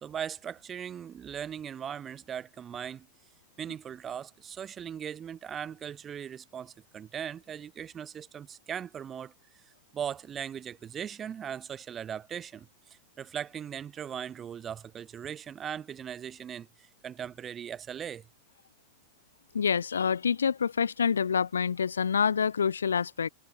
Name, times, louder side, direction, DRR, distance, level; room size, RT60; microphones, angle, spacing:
voice 1, 0.0-3.1 3.6-9.3 9.9-18.2, right 8 dB, 25° right, 3.2 m, -39 dB
voice 2, 19.5-23.3, left 6 dB, 70° left, 0.3 m, -27 dB
figure-of-eight pair, 90°, 0 cm